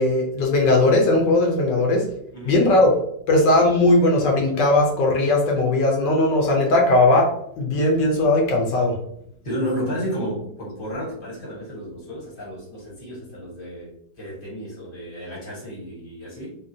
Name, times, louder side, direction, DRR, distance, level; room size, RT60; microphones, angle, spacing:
voice 1, 0.0-2.1 2.4-3.0 3.3-9.0, left 2 dB, 70° left, 0 dB, 1.2 m, -18 dB
voice 2, 2.3-2.6 9.4-16.5, equal, 40° left, -5 dB, 0.8 m, -32 dB
3.7 x 2.1 x 2.5 m, 0.71 s
omnidirectional pair, 2.2 m